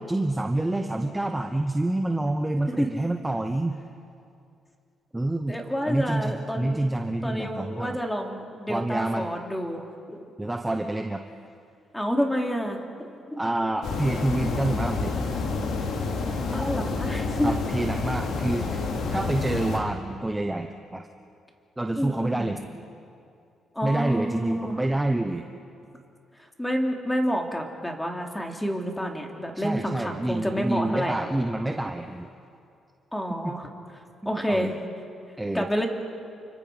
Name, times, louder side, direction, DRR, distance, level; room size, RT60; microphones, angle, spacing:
voice 1, 0.1-3.8 5.1-5.6 5.9-8.0 8.7-9.3 10.4-11.2 13.4-15.2 17.4-21.1 21.8-22.6 23.8-25.4 29.5-32.3 33.4-33.5 34.2-34.7 35.4-35.7, right 1 dB, 10° right, 5 dB, 1.1 m, -27 dB
voice 2, 5.5-6.8 7.2-10.2 11.9-13.4 16.5-17.6 22.0-22.5 23.7-24.7 26.6-31.3 33.1-33.7 34.2-34.7 35.5-35.9, equal, 5° left, 1 dB, 3.3 m, -29 dB
sound 1, 13.8-19.8, left 4 dB, 75° left, 3.1 m, -29 dB
29.5 x 25.0 x 5.2 m, 2.5 s
cardioid pair, 90°, 0 cm